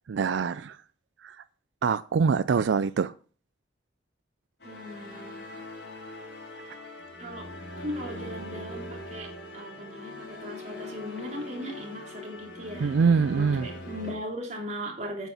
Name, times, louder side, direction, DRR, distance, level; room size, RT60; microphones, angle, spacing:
voice 1, 0.1-0.8 1.2-1.4 1.8-3.1 12.8-13.7, right 5 dB, 90° right, 0.4 m, -24 dB
sound 1, 4.6-14.1, left 1 dB, 75° left, 4.5 m, -41 dB
voice 2, 4.6-5.6 7.2-7.5 7.8-13.0 13.3-15.3, equal, 40° right, 3.4 m, -38 dB
8.9 x 8.2 x 5.6 m
head